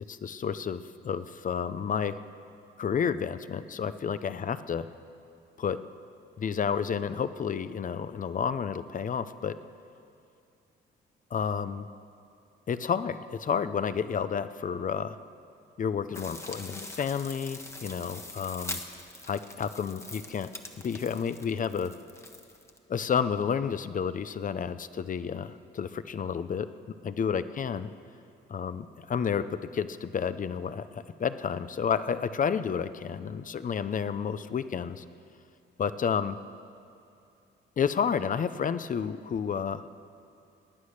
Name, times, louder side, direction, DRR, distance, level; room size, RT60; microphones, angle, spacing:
voice 1, 0.1-2.1 2.8-4.9 5.6-5.8 6.4-9.6 11.3-11.9 12.7-15.2 15.8-18.8 19.3-20.5 20.8-21.9 22.9-26.7 27.0-27.9 28.5-35.0 35.8-36.4 37.8-39.8, left 7 dB, 40° left, 13 dB, 0.7 m, -30 dB
sound 1, 16.1-22.8, left 2 dB, 15° left, 1.3 m, -43 dB
20.0 x 9.5 x 6.6 m, 2.6 s
cardioid pair, 90°, 20 cm